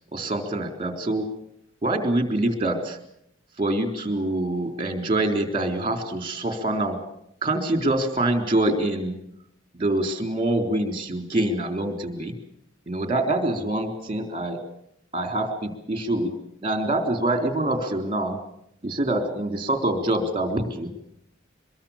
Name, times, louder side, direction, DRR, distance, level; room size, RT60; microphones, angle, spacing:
voice 1, 0.1-1.3 1.8-3.0 3.6-7.0 7.4-9.2 9.7-12.4 12.9-14.6 15.1-16.4 16.6-18.4 18.8-20.9, right 1 dB, 25° right, 6 dB, 3.7 m, -25 dB
23.5 x 22.5 x 7.3 m, 0.73 s
head